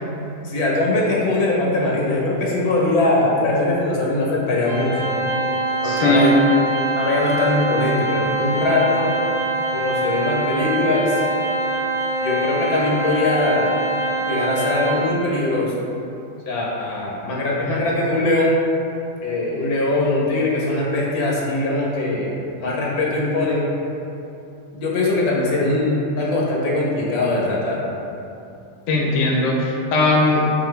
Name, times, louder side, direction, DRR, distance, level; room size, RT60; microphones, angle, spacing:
voice 1, 0.4-5.1 5.8-6.3 7.0-9.2 9.7-11.2 12.2-13.7 14.3-15.7 16.5-18.6 19.2-22.3 22.6-23.6 24.7-27.8, left 2 dB, 90° left, -4 dB, 1.2 m, -21 dB
Organ, 4.7-15.4, right 1 dB, 35° right, 1.1 m, -24 dB
voice 2, 5.8-6.3 28.9-30.4, left 2 dB, 70° left, -2 dB, 0.9 m, -18 dB
4.2 x 2.7 x 3.2 m, 2.8 s
omnidirectional pair, 1.5 m